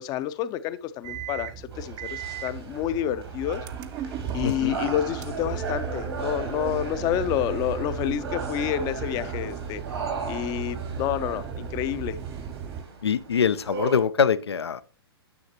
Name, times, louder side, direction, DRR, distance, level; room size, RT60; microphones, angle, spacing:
voice 1, 0.0-3.6 4.3-9.8 10.3-12.2, left 11 dB, 30° left, 0.6 m, -29 dB
sound 1, 1.0-12.8, right 7 dB, 30° right, 0.6 m, -35 dB
sound 2, 1.7-14.0, right 4 dB, 80° right, 2.8 m, -37 dB
voice 2, 4.4-4.8 13.0-14.8, left 7 dB, 80° left, 0.6 m, -23 dB
9.6 x 6.5 x 2.9 m
hypercardioid pair, 115°, 13 cm